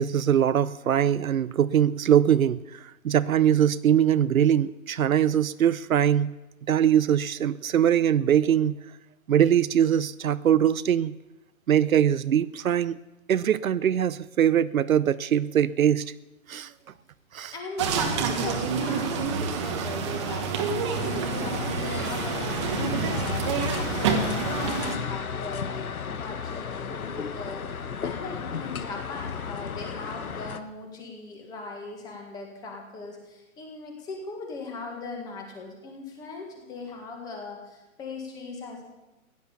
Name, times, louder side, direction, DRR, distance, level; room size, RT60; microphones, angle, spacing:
voice 1, 0.0-2.6 3.0-6.3 6.7-8.8 9.3-11.1 11.7-12.9 13.3-16.0 16.5-16.7 17.3-17.5, right 9 dB, 75° right, 16 dB, 0.7 m, -22 dB
voice 2, 17.5-38.8, left 3 dB, 10° left, 2 dB, 1.8 m, -39 dB
sound 1, 17.8-25.0, right 5 dB, 20° right, 1.2 m, -28 dB
sound 2, 21.0-30.6, left 6 dB, 85° left, 1.5 m, -34 dB
16.0 x 10.5 x 7.1 m, 1.0 s
hypercardioid pair, 165°, 42 cm